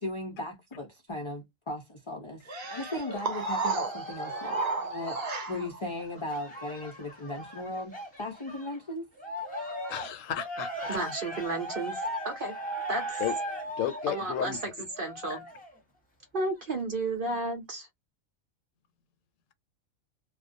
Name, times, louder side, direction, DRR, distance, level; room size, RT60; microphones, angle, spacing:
voice 1, 0.0-2.4 2.7-5.2 5.5-9.1, left 1 dB, 45° left, 0.4 m, -37 dB
Cheering, 2.5-8.8 9.2-15.8 16.4-16.5, equal, 10° left, 0.8 m, -38 dB
sound 1, 2.5-5.8, right 4 dB, 75° right, 0.3 m, -33 dB
voice 2, 9.9-11.0 13.2-13.3 13.8-14.6 15.3-15.4, left 11 dB, 75° left, 0.9 m, -33 dB
voice 3, 10.9-11.9 12.2-12.5 12.9-13.2 14.1-14.6 15.0-15.4 16.3-17.9, right 2 dB, 50° right, 0.7 m, -32 dB
2.3 x 2.1 x 2.5 m
omnidirectional pair, 1.4 m